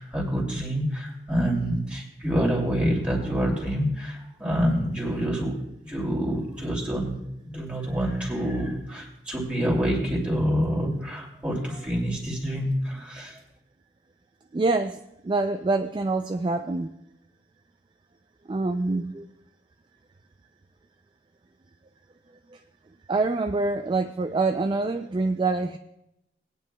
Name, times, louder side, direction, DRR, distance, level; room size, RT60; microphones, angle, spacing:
voice 1, 0.0-7.2 7.4-13.4, equal, 5° right, -2 dB, 2.5 m, -27 dB
voice 2, 14.5-15.0 15.2-16.9 18.5-19.2 22.5-22.6 23.1-25.8, right 3 dB, 25° right, 7 dB, 0.3 m, -25 dB
20.0 x 9.4 x 2.2 m, 0.86 s
head